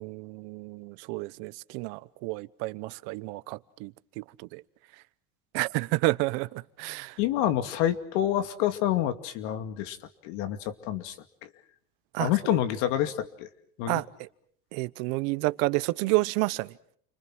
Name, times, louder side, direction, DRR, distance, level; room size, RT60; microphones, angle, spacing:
voice 1, 0.0-4.2 4.5-4.6 5.5-7.2 12.1-12.6 13.9-14.3 14.7-16.7, right 22 dB, 80° right, 1.0 m, -30 dB
voice 2, 7.2-10.0 10.2-11.2 11.4-11.5 12.2-13.5 13.8-14.0, left 12 dB, 90° left, 2.4 m, -28 dB
29.5 x 24.5 x 6.2 m
cardioid pair, 165°, 35 cm